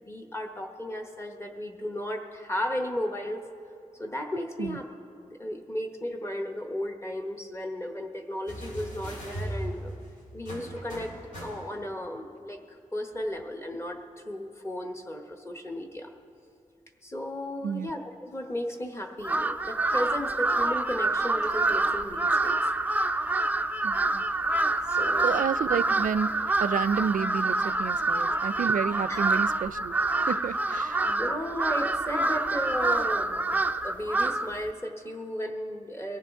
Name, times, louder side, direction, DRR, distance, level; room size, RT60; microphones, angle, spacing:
voice 1, 0.0-3.4 4.0-4.9 5.3-9.9 10.3-16.1 17.0-22.6 24.9-25.3 29.1-29.2 31.0-36.2, left 1 dB, 20° left, 4 dB, 1.0 m, -35 dB
sound 1, 8.5-12.0 13.2-13.3, right 1 dB, 75° left, 4.0 m, -38 dB
voice 2, 17.6-17.9 23.8-24.2 25.2-31.2, right 7 dB, 85° right, 16 dB, 0.4 m, -30 dB
Crow, 19.2-34.6, right 2 dB, 10° right, 0.3 m, -27 dB
23.0 x 15.5 x 3.6 m, 2.4 s
wide cardioid pair, 165°, 13 cm